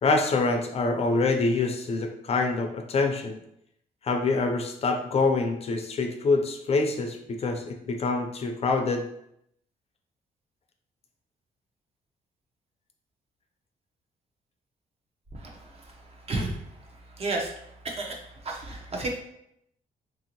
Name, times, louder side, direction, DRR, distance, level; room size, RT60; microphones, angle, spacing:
voice 1, 0.0-3.4 4.0-9.1, left 3 dB, 40° left, 5 dB, 0.4 m, -25 dB
voice 2, 16.3-16.6 17.2-17.5 17.8-18.1 18.4-19.1, right 2 dB, 40° right, 1 dB, 0.7 m, -30 dB
2.9 x 2.7 x 2.8 m, 0.76 s
cardioid pair, 105°, 15 cm